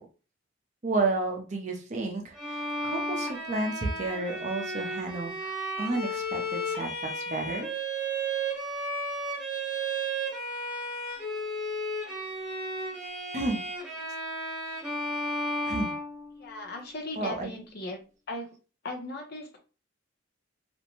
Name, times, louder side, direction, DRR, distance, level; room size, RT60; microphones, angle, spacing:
voice 1, 0.8-5.5 5.8-7.7 13.3-13.6 15.7-15.9 17.2-17.5, right 2 dB, 35° right, 3 dB, 0.5 m, -31 dB
Bowed string instrument, 2.4-16.6, right 1 dB, 5° right, 0.8 m, -33 dB
voice 2, 16.4-18.0 18.3-18.5 18.8-19.6, left 2 dB, 55° left, 2 dB, 0.7 m, -38 dB
2.5 x 2.1 x 2.9 m, 0.34 s
head